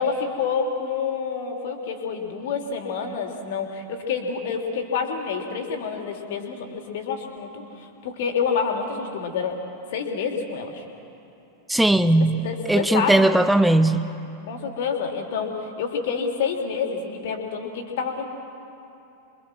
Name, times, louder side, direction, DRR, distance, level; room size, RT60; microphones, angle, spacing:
voice 1, 0.0-9.6 9.9-10.8 12.4-13.2 14.5-18.2, left 6 dB, 55° left, 3 dB, 3.2 m, -28 dB
voice 2, 11.7-14.1, right 1 dB, 5° right, 11 dB, 1.0 m, -19 dB
28.5 x 24.0 x 6.3 m, 2.8 s
figure-of-eight pair, 90°, 0 cm